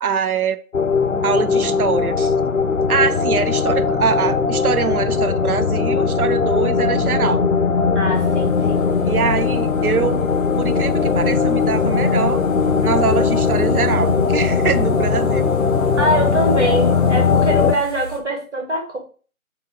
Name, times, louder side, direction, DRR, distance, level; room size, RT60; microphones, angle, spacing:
voice 1, 0.0-0.6 1.2-2.3 2.9-7.4 9.0-10.3 10.6-12.4 12.8-15.5, right 6 dB, 90° right, 0.5 m, -23 dB
sound 1, 0.7-17.7, left 5 dB, 65° left, 0.5 m, -19 dB
voice 2, 7.9-8.9 16.0-19.0, right 1 dB, 55° right, 1.3 m, -23 dB
sound 2, 8.1-18.2, right 2 dB, 25° left, 0.9 m, -37 dB
4.1 x 2.2 x 3.5 m
figure-of-eight pair, 165°, 43 cm